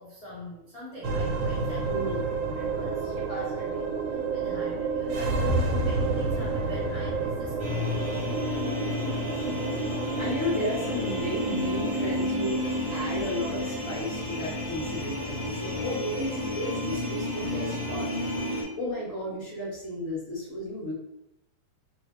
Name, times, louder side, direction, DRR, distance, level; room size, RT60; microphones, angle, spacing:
voice 1, 0.0-2.2 2.5-8.2 9.4-9.8 15.2-15.3 15.9-16.1, equal, 65° left, -9 dB, 0.3 m, -43 dB
sound 1, 1.0-19.5, right 3 dB, 75° right, 1.4 m, -31 dB
voice 2, 1.9-2.2 8.1-8.4 10.2-12.6 12.9-18.4 18.8-20.9, left 1 dB, 45° left, -6 dB, 1.2 m, -33 dB
sound 2, 7.6-18.6, left 2 dB, 30° right, 1.3 m, -32 dB
3.1 x 3.0 x 3.0 m, 0.83 s
omnidirectional pair, 2.4 m